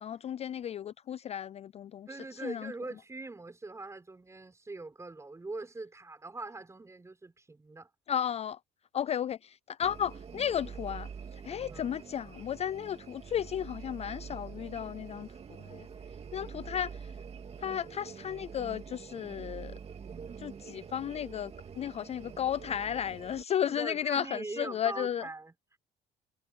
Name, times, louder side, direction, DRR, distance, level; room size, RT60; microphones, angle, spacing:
voice 1, 0.0-2.1 2.4-2.7 8.1-8.6 8.9-11.1 11.4-15.3 15.7-15.9 16.3-16.9 17.6-19.7 20.4-25.3, left 9 dB, 40° left, 0.4 m, -34 dB
voice 2, 2.1-7.9 11.5-11.9 16.3-16.9 23.7-25.5, right 3 dB, 15° right, 6.0 m, -42 dB
sound 1, 9.8-23.4, right 6 dB, 35° right, 2.5 m, -46 dB
cardioid pair, 110°, 17 cm